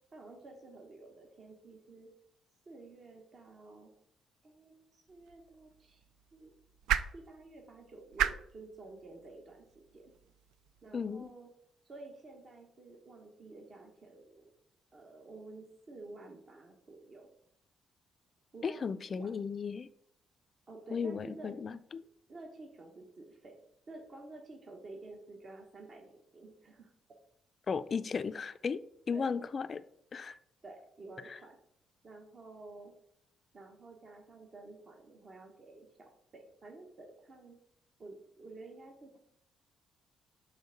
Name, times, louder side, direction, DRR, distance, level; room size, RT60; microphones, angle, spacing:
voice 1, 0.1-2.1 2.7-3.9 4.4-6.0 6.3-6.5 7.1-10.1 10.8-11.5 11.8-14.5 14.9-17.3 18.5-19.3 20.7-21.5 22.3-23.6 23.9-26.9 29.1-29.3 30.6-31.6 32.0-32.9 33.5-35.9 36.3-37.6 38.0-39.2, right 2 dB, 45° right, 1 dB, 1.1 m, -51 dB
sound 1, 5.1-11.3, right 10 dB, 85° right, 0.3 m, -39 dB
voice 2, 10.9-11.3 18.6-19.9 20.9-22.0 27.7-28.8 29.1-29.8 30.1-30.3 31.2-31.4, left 5 dB, 45° left, 12 dB, 0.4 m, -35 dB
5.5 x 3.5 x 5.9 m, 0.73 s
cardioid pair, 90°, 0 cm